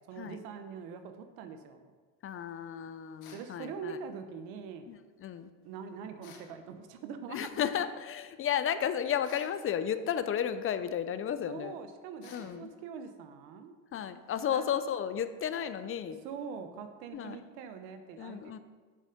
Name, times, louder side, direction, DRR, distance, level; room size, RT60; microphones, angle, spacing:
voice 1, 0.1-1.8 3.3-4.8 5.6-7.5 11.5-13.7 14.5-14.6 16.2-18.6, right 6 dB, 85° right, 8 dB, 1.0 m, -43 dB
voice 2, 2.2-4.0 4.9-5.5 7.3-11.8 12.3-12.7 13.9-16.2 17.1-17.4 18.2-18.6, left 9 dB, 35° left, 12 dB, 0.5 m, -33 dB
sound 1, 3.2-3.5 6.2-6.5 9.2-9.6 12.2-12.5, left 6 dB, 80° left, 1.5 m, -53 dB
7.4 x 6.7 x 5.1 m, 1.4 s
supercardioid pair, 100°, 36 cm